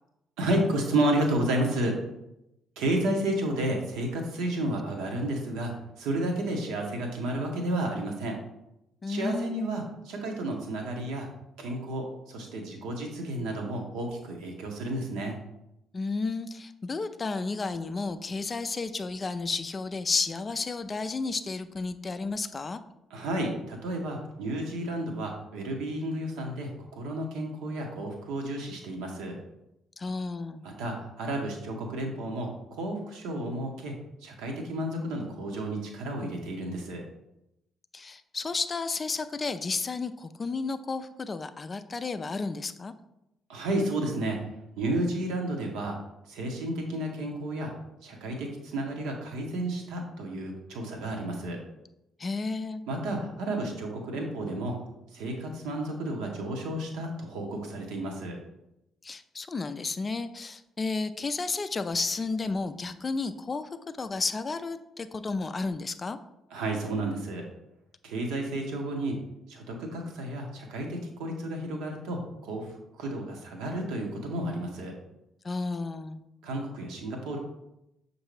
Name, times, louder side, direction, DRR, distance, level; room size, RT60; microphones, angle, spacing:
voice 1, 0.4-2.0 2.8-5.7 6.0-8.4 9.1-11.3 11.6-15.3 23.1-29.4 30.6-34.0 34.2-37.0 43.5-44.4 44.8-46.0 46.3-47.7 48.0-51.6 52.9-54.7 55.1-58.4 66.5-67.4 68.0-69.2 69.5-74.9 76.4-77.4, right 1 dB, 70° right, 2 dB, 0.8 m, -31 dB
voice 2, 9.0-9.7 15.9-22.8 30.0-30.6 37.9-42.9 52.2-52.8 59.0-63.6 64.0-66.2 75.4-76.2, left 4 dB, 35° left, 10 dB, 0.3 m, -32 dB
6.3 x 2.6 x 3.1 m, 0.88 s
figure-of-eight pair, 45°, 0 cm